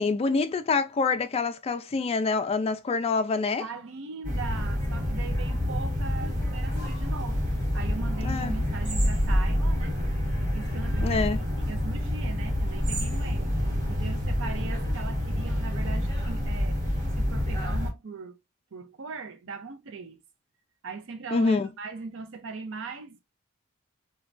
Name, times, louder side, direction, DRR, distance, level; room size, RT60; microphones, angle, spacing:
voice 1, 0.0-3.6 8.2-8.5 11.0-11.4 21.3-21.7, left 4 dB, 30° left, 0.3 m, -26 dB
voice 2, 3.6-10.0 10.5-13.5 13.9-16.9 17.2-18.4 18.7-20.2 20.8-23.2, right 4 dB, 65° right, 0.6 m, -39 dB
sound 1, 4.2-17.9, left 1 dB, 40° right, 1.2 m, -27 dB
3.2 x 2.2 x 2.4 m
head